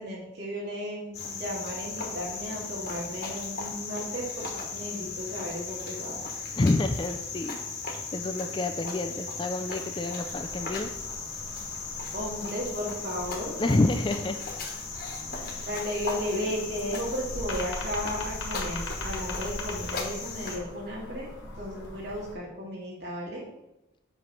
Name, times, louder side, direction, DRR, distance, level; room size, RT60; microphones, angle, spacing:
voice 1, 0.0-4.5 4.7-6.2 12.1-13.6 15.2-21.3 21.6-23.4, equal, 55° right, -5 dB, 2.6 m, -34 dB
Cricket, 1.1-20.6, left 4 dB, 50° left, 1.3 m, -37 dB
voice 2, 6.5-7.6 8.1-10.9 13.6-14.4 15.4-15.7, left 2 dB, 25° left, 6 dB, 0.4 m, -28 dB
sound 1, 10.2-22.3, left 1 dB, 65° left, 1.5 m, -41 dB
7.6 x 3.2 x 5.7 m, 0.92 s
head